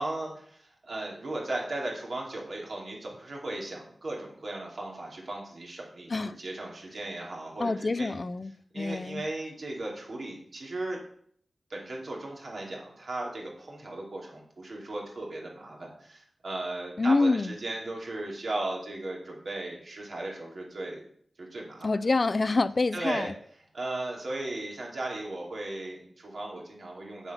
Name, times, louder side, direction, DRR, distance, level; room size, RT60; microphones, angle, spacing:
voice 1, 0.0-6.1 6.4-8.1 8.7-11.0 11.7-21.0 21.4-21.9 22.9-23.3 23.7-27.3, right 2 dB, 65° right, 2.8 m, -36 dB
voice 2, 7.6-9.2 17.0-17.5 21.8-23.3, left 3 dB, 45° left, 0.4 m, -26 dB
7.1 x 7.0 x 5.8 m
wide cardioid pair, 75°, 0 cm